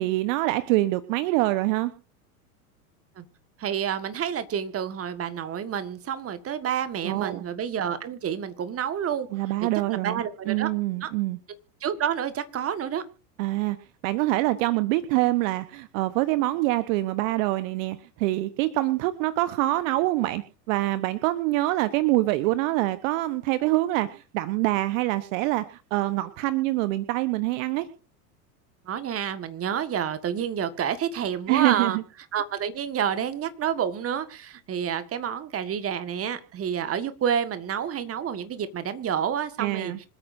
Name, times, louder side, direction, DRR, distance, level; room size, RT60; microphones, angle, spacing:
voice 1, 0.0-1.9 7.0-7.4 9.3-11.4 13.4-13.8 14.0-20.4 20.7-27.9 31.5-32.0 39.6-40.0, right 18 dB, 55° right, 12 dB, 1.2 m, -25 dB
voice 2, 3.6-9.3 10.0-10.7 11.0-11.1 11.8-13.0 28.9-32.0 32.3-40.1, right 8 dB, 30° right, 11 dB, 1.7 m, -29 dB
26.0 x 9.0 x 2.7 m, 0.34 s
hypercardioid pair, 90°, 47 cm